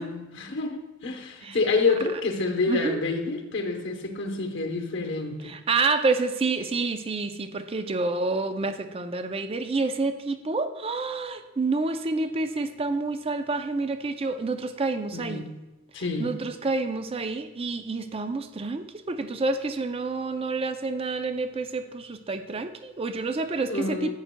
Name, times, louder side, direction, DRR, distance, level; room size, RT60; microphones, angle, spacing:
voice 1, 0.0-5.5 15.1-15.5 15.9-16.3 23.7-24.1, left 3 dB, 60° left, 4 dB, 0.9 m, -28 dB
voice 2, 2.7-3.0 5.4-15.4 16.2-24.1, right 3 dB, 25° right, 9 dB, 0.4 m, -28 dB
11.0 x 9.0 x 2.2 m, 1.1 s
head